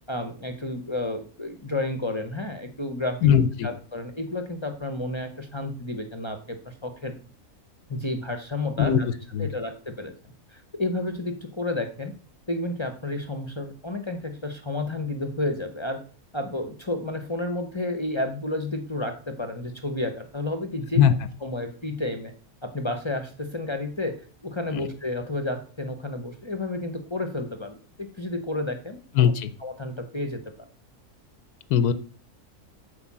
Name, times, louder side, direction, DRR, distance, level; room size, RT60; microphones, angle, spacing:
voice 1, 0.1-3.3 3.6-7.2 7.9-9.1 9.4-10.1 10.5-12.1 12.5-16.0 16.3-21.0 21.4-22.3 22.6-29.3 29.6-30.7, left 2 dB, 25° left, 7 dB, 0.7 m, -31 dB
voice 2, 3.2-3.7 8.8-9.5 21.0-21.1 24.7-24.8 29.1-29.5 31.7-31.9, left 9 dB, 90° left, 13 dB, 1.2 m, -20 dB
8.6 x 4.7 x 7.3 m, 0.41 s
omnidirectional pair, 1.6 m